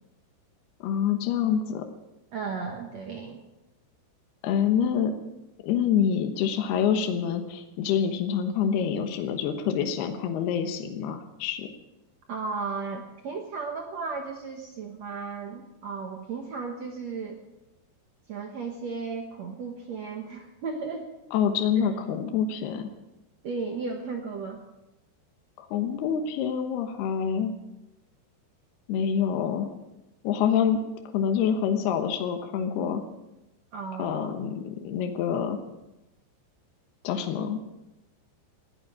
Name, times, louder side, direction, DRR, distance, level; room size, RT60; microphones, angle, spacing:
voice 1, 0.8-1.8 4.4-5.1 5.6-11.7 21.3-22.9 25.6-27.5 28.9-29.7 30.2-30.8 31.1-33.0 34.0-35.6 37.0-37.6, left 8 dB, 70° left, 5 dB, 3.0 m, -26 dB
voice 2, 2.3-3.4 12.3-17.4 18.3-21.1 23.4-24.6 33.7-34.4, right 4 dB, 70° right, 3 dB, 1.6 m, -35 dB
20.0 x 14.5 x 4.9 m, 0.95 s
omnidirectional pair, 5.1 m